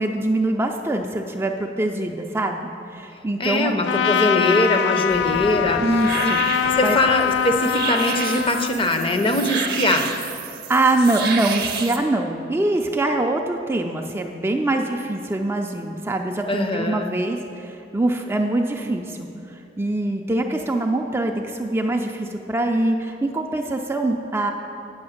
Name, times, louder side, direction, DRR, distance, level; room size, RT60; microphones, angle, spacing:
voice 1, 0.0-2.6 2.9-3.7 5.8-6.5 6.8-7.0 10.7-24.5, right 2 dB, 15° right, 3 dB, 0.3 m, -23 dB
voice 2, 3.4-5.8 6.2-6.3 6.7-10.1 16.5-17.1, left 1 dB, 30° left, 5 dB, 0.6 m, -22 dB
Trumpet, 3.8-8.8, left 8 dB, 80° left, 0.3 m, -23 dB
sound 1, 5.1-12.0, right 6 dB, 55° right, 0.7 m, -30 dB
8.7 x 5.2 x 6.4 m, 2.6 s
head